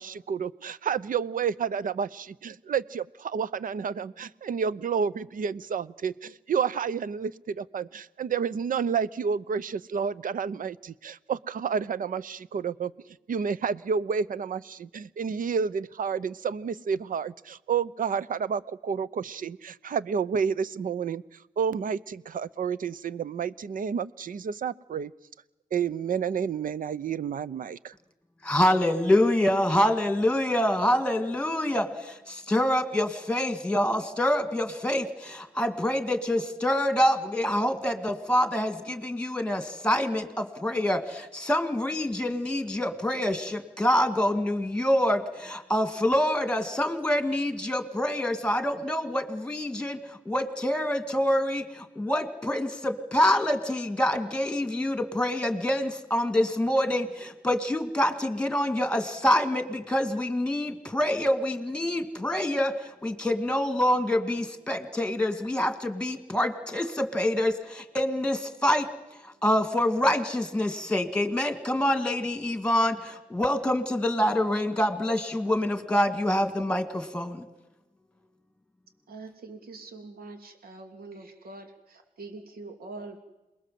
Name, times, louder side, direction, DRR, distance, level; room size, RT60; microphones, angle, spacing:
voice 1, 0.0-12.9 13.3-21.2 21.6-25.1 25.7-27.9, right 6 dB, 65° right, 18 dB, 0.7 m, -30 dB
voice 2, 28.4-50.0 50.3-62.7 63.0-68.9 69.4-77.4, left 1 dB, 5° left, 8 dB, 2.3 m, -26 dB
voice 3, 79.1-81.7 82.2-83.2, right 3 dB, 90° right, 5 dB, 3.1 m, -43 dB
27.5 x 20.5 x 7.7 m, 1.0 s
wide cardioid pair, 110°, 15 cm